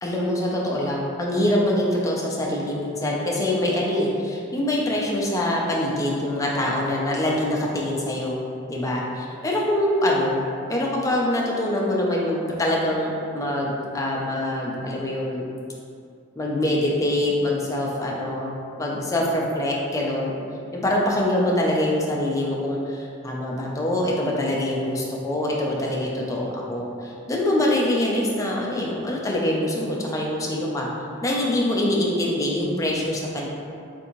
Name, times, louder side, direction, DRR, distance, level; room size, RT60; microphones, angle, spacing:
voice 1, 0.0-8.4 8.7-10.4 10.7-15.5 16.4-20.3 20.7-30.9 31.2-33.5, left 1 dB, 15° left, -3 dB, 0.4 m, -24 dB
3.6 x 2.5 x 2.9 m, 2.5 s
head